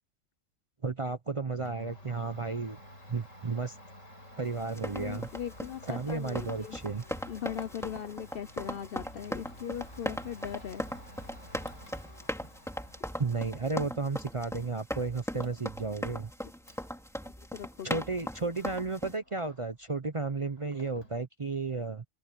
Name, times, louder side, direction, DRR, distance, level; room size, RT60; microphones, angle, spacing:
voice 1, 0.8-2.8 3.1-3.8 4.4-5.3 5.9-7.0 13.2-16.3 17.8-22.0, right 4 dB, 30° right, 0.6 m, -33 dB
Domestic sounds home sounds, 1.6-19.9 20.2-21.2, left 1 dB, 75° left, 6.0 m, -53 dB
sound 1, 4.6-19.2, equal, ahead, 2.6 m, -39 dB
voice 2, 4.9-6.8 7.3-10.8 17.2-18.0, left 9 dB, 55° left, 0.7 m, -39 dB
open air
omnidirectional pair, 1.3 m